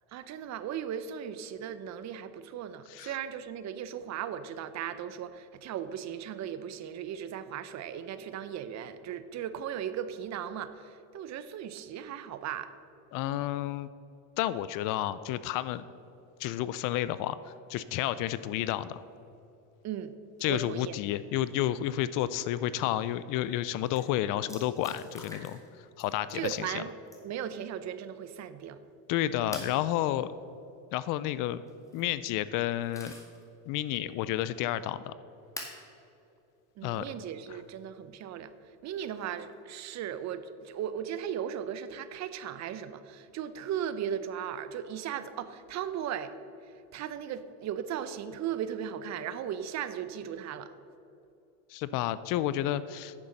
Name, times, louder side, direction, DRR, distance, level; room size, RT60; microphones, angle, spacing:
voice 1, 0.1-12.7 19.8-20.1 20.5-21.0 26.3-26.9 27.2-28.8 36.8-38.5 38.8-46.3 46.6-50.7, right 9 dB, 40° right, 12 dB, 0.7 m, -37 dB
voice 2, 13.1-13.9 14.4-15.8 16.4-19.0 20.4-25.6 26.0-26.8 29.1-30.3 30.9-31.6 31.9-33.1 33.7-35.1 36.8-37.1 51.7-53.1, left 13 dB, 50° left, 16 dB, 0.4 m, -31 dB
sound 1, 23.6-23.7 23.9-24.0 24.5-25.7 26.0-26.6 27.1-27.4 29.5-29.8 31.7-32.1 32.6-33.4 33.9-34.0 35.6-35.8 37.0-37.1 39.1-39.5, left 1 dB, 5° left, 1.8 m, -44 dB
9.8 x 7.0 x 6.5 m, 2.8 s
supercardioid pair, 110°, 44 cm